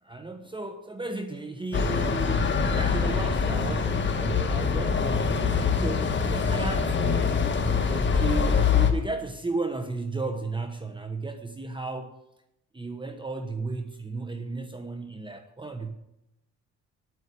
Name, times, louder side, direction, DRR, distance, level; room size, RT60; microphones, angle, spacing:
voice 1, 0.0-7.4 7.8-12.1 12.7-15.9, right 3 dB, 15° right, 6 dB, 1.1 m, -34 dB
sound 1, 1.7-8.9, left 5 dB, 40° left, 1.8 m, -24 dB
10.0 x 9.3 x 8.4 m, 0.87 s
cardioid pair, 90°, 30 cm